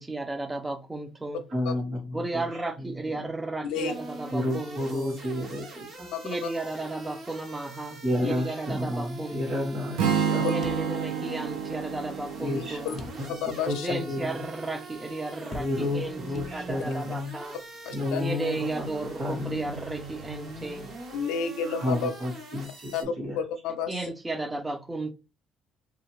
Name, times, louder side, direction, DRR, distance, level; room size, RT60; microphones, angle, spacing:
voice 1, 0.0-1.4 2.1-5.2 6.2-9.7 10.4-12.9 13.8-17.6 18.2-20.9 23.9-25.1, right 2 dB, 15° right, 0.5 m, -34 dB
voice 2, 1.5-3.2 4.3-6.1 8.0-10.5 12.4-13.3 13.6-14.4 15.6-17.3 17.9-18.9 19.2-19.7 21.6-23.4, left 1 dB, 35° right, 1.1 m, -31 dB
voice 3, 3.6-3.9 6.1-6.5 8.2-8.3 10.4-10.6 12.5-12.9 13.3-13.9 17.8-18.2 21.1-22.1 22.9-23.0 23.4-24.0, left 6 dB, 85° left, 0.5 m, -31 dB
sound 1, 3.7-23.0, right 2 dB, 55° right, 1.0 m, -43 dB
Strum, 10.0-14.1, right 7 dB, 85° right, 0.6 m, -30 dB
sound 2, 10.6-11.5 11.8-11.9 13.0-13.6 14.1-14.2 15.5-16.1 16.3-17.0, left 3 dB, 35° left, 0.5 m, -43 dB
2.5 x 2.4 x 3.1 m
cardioid pair, 115°, 0 cm